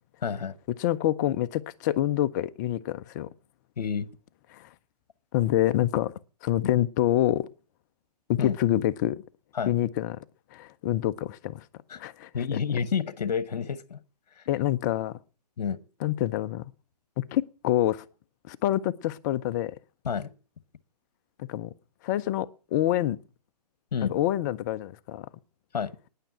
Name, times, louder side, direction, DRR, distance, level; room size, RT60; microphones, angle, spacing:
voice 1, 0.2-0.6 3.8-4.1 6.6-6.7 8.4-8.6 9.5-9.7 11.9-12.0 12.3-14.0 14.3-14.4 15.6-15.8 20.0-20.3 23.9-24.1 25.7-25.9, left 6 dB, 70° left, 1.1 m, -29 dB
voice 2, 0.8-3.3 4.5-4.7 5.3-6.1 6.4-7.5 8.3-9.2 9.7-10.2 10.5-11.6 12.0-12.6 14.5-15.1 16.0-16.6 17.2-18.0 18.5-19.7 21.4-21.7 22.0-23.2 24.0-25.3, left 13 dB, 25° left, 0.6 m, -26 dB
10.0 x 9.1 x 8.7 m
hypercardioid pair, 140°, 21 cm